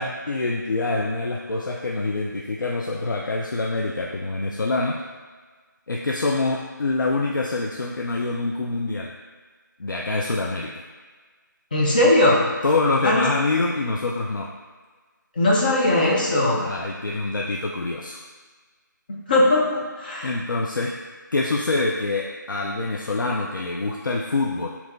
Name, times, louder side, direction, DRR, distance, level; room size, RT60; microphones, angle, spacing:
voice 1, 0.0-5.0 5.9-9.1 9.8-10.8 12.6-14.5 16.6-18.2 20.2-21.0 21.3-24.7, left 3 dB, 70° left, -1 dB, 0.4 m, -25 dB
voice 2, 11.7-12.4 13.0-13.2 15.4-16.7 19.1-20.3, left 1 dB, 25° left, -4 dB, 0.6 m, -19 dB
5.3 x 3.0 x 2.2 m, 1.4 s
figure-of-eight pair, 160°, 11 cm